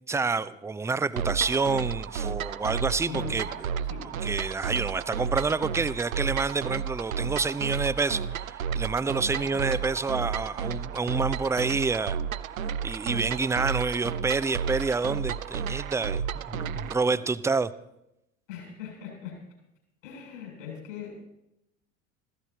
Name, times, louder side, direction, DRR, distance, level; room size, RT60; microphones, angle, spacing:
voice 1, 0.1-3.7 4.2-12.2 12.6-16.2 16.9-17.7, right 4 dB, 5° right, 16 dB, 0.5 m, -28 dB
sound 1, 1.2-17.0, right 7 dB, 80° right, 0.7 m, -32 dB
voice 2, 3.0-3.6 3.9-4.0 9.3-9.5 16.5-17.2 18.5-19.3 20.0-21.3, left 8 dB, 70° left, 1 dB, 7.7 m, -41 dB
26.0 x 16.0 x 2.9 m, 0.86 s
figure-of-eight pair, 70°, 40 cm